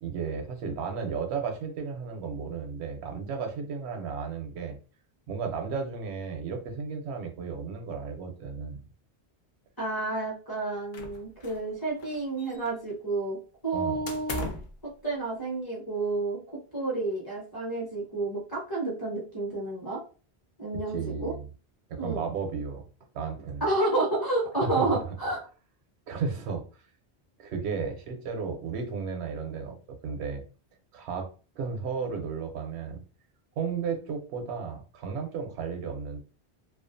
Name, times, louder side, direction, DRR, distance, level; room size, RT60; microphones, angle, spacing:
voice 1, 0.0-4.8 5.3-8.8 13.7-14.1 20.9-21.5 21.9-22.8 23.1-23.6 24.6-24.9 26.1-26.9 27.4-29.8 30.0-30.4 30.9-31.3 31.6-33.0 33.6-36.2, right 5 dB, 80° right, 5 dB, 0.9 m, -34 dB
voice 2, 9.8-13.4 13.6-14.4 14.8-16.4 16.7-20.0 20.6-21.3 22.0-22.2 23.6-25.4, right 2 dB, 20° left, -4 dB, 0.8 m, -30 dB
sound 1, 10.9-11.7 12.0-12.9 14.1-14.8, left 3 dB, 60° left, 0.6 m, -38 dB
2.4 x 2.3 x 2.5 m, 0.36 s
omnidirectional pair, 1.1 m